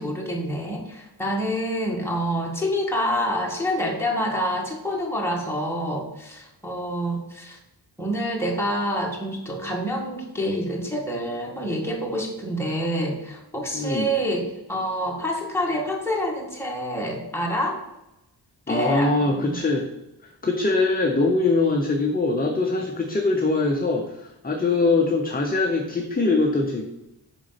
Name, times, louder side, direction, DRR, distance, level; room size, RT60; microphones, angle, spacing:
voice 1, 0.0-7.6 8.0-17.8 18.7-19.6, equal, 5° left, -2 dB, 1.7 m, -27 dB
voice 2, 13.7-14.1 18.7-19.9 20.2-26.9, left 3 dB, 20° left, 2 dB, 0.8 m, -22 dB
8.1 x 5.2 x 5.8 m, 0.93 s
wide cardioid pair, 150°, 42 cm